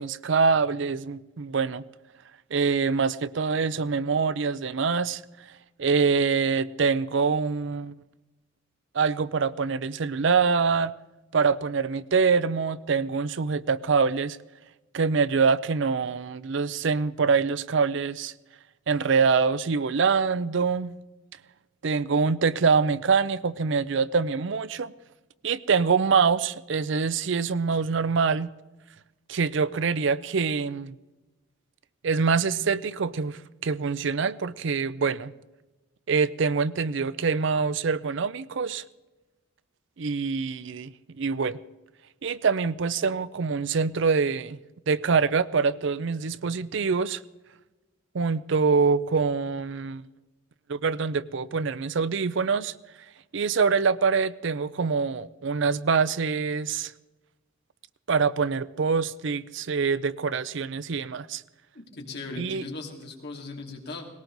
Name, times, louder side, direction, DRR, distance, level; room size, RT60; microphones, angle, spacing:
voice 1, 0.0-1.8 2.5-5.2 5.8-7.9 8.9-10.9 11.3-14.4 14.9-18.3 18.9-20.9 21.8-24.9 25.4-28.5 29.3-30.9 32.0-35.3 36.1-38.8 40.0-41.6 42.2-44.6 44.9-47.2 48.1-50.0 50.7-52.7 53.3-56.9 58.1-61.4 62.4-62.6, right 5 dB, 60° right, 0.5 m, -25 dB
voice 2, 61.7-64.1, left 3 dB, 55° left, 2.7 m, -38 dB
19.0 x 18.0 x 4.0 m
head